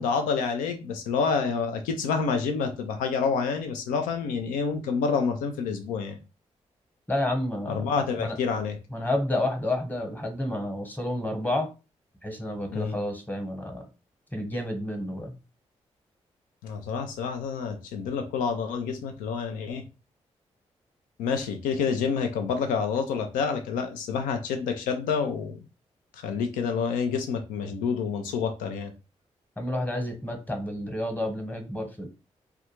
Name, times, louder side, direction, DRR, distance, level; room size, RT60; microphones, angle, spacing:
voice 1, 0.0-6.2 7.7-8.8 12.7-13.0 16.6-19.8 21.2-25.6 26.1-28.9, left 5 dB, 90° left, 0.4 m, -28 dB
voice 2, 7.1-7.9 8.2-8.4 8.9-11.7 12.2-13.9 14.3-15.3 29.6-32.1, left 1 dB, 10° left, 1.0 m, -30 dB
2.4 x 2.3 x 2.9 m
hypercardioid pair, 40°, 14 cm